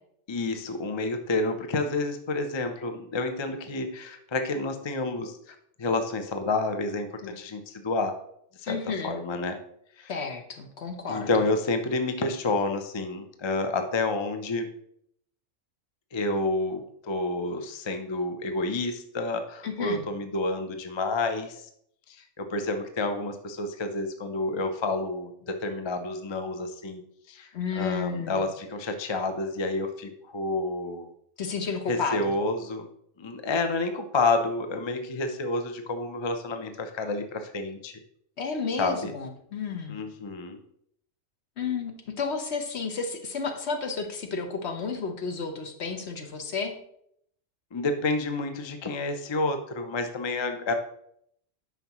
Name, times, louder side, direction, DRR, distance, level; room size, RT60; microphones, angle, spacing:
voice 1, 0.3-8.1 8.6-8.8 9.0-9.6 10.0-10.1 11.1-14.7 16.1-21.7 22.1-27.0 27.3-27.5 27.8-31.1 31.9-32.9 33.2-37.9 38.8-39.1 39.9-40.6 47.7-50.7, left 2 dB, 35° left, 7 dB, 0.5 m, -29 dB
voice 2, 8.7-9.2 10.1-11.3 19.6-20.0 27.5-28.5 31.4-32.3 38.4-40.0 41.6-41.9 42.2-46.7, left 5 dB, 60° left, 5 dB, 1.2 m, -32 dB
9.2 x 5.7 x 3.0 m, 0.70 s
omnidirectional pair, 1.3 m